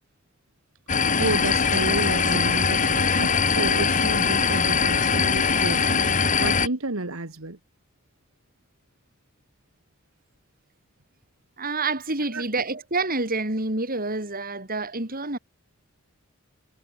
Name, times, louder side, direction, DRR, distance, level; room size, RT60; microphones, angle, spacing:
sound 1, 0.9-6.7, left 5 dB, 40° left, 2.4 m, -22 dB
voice 1, 1.2-6.0 6.4-7.6 12.3-12.4, right 2 dB, 85° right, 2.2 m, -31 dB
voice 2, 11.6-15.4, right 3 dB, 45° right, 7.4 m, -28 dB
head